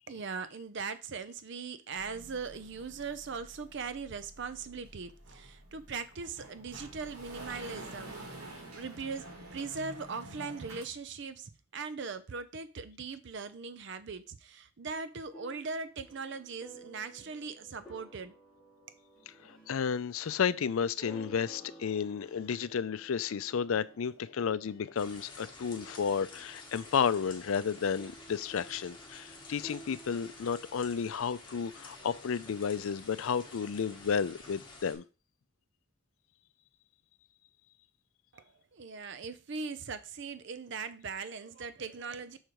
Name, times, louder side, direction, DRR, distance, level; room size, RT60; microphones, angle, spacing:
voice 1, 0.1-8.1 8.7-18.3 38.3-38.4 38.7-42.4, right 5 dB, 55° right, 0.5 m, -40 dB
sound 1, 1.9-10.8, right 1 dB, 90° right, 2.5 m, -49 dB
sound 2, 15.3-25.3 25.6-30.7, right 1 dB, 5° left, 2.1 m, -54 dB
voice 2, 19.3-35.0, left 6 dB, 75° left, 0.4 m, -32 dB
sound 3, 25.0-35.0, left 3 dB, 20° left, 1.5 m, -51 dB
6.4 x 5.0 x 4.6 m
head